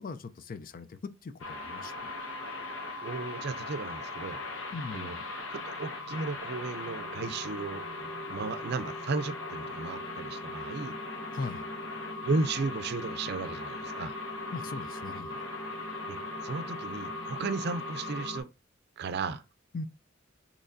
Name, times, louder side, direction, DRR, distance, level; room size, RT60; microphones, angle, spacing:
voice 1, 0.0-2.1 4.7-5.3 11.3-11.7 14.5-15.4 19.7-19.8, left 3 dB, 45° left, 0.4 m, -40 dB
sound 1, 1.4-18.4, left 2 dB, 80° left, 0.9 m, -39 dB
voice 2, 3.0-4.4 4.9-5.2 5.5-11.0 12.2-14.2 16.1-16.2 16.4-18.5 19.0-19.4, right 3 dB, 55° right, 0.5 m, -34 dB
6.6 x 3.0 x 2.6 m
head